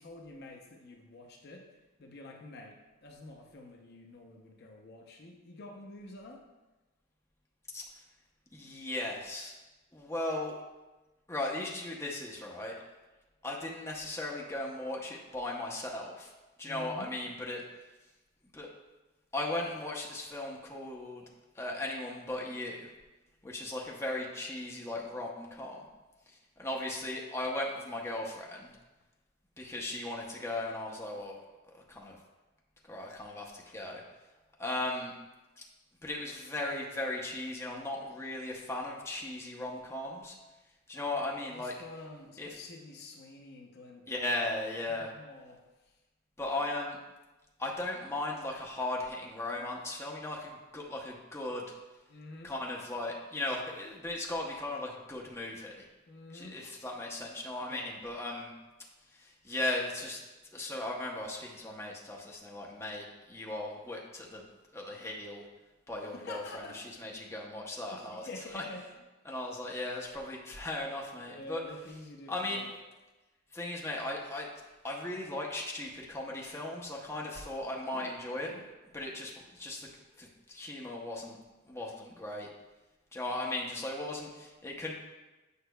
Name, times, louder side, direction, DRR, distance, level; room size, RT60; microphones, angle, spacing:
voice 1, 0.0-6.4 16.6-17.2 40.9-44.3 44.9-46.0 52.1-52.5 56.1-56.6 57.6-57.9 66.1-66.8 67.9-68.9 71.1-72.7 77.9-78.1 78.4-78.7, left 2 dB, 50° left, 2 dB, 0.6 m, -48 dB
voice 2, 8.5-9.5 9.9-10.6 11.3-12.8 13.4-16.3 16.6-17.6 18.5-18.7 19.3-21.2 21.5-22.9 23.4-25.8 26.6-28.7 29.6-31.4 31.7-32.2 32.9-34.0 34.6-35.1 35.6-35.7 36.0-40.3 40.9-41.7 42.4-42.5 44.1-45.1 46.4-47.0 47.6-51.6 52.4-55.8 56.3-58.5 59.1-60.2 60.5-64.4 64.7-65.4 65.9-68.3 68.5-68.6 69.3-71.6 72.3-72.6 73.5-74.5 74.8-78.5 78.9-79.9 80.2-81.4 81.6-82.5 83.1-84.9, left 2 dB, 15° left, -2 dB, 0.7 m, -37 dB
8.1 x 5.6 x 2.2 m, 1.1 s
head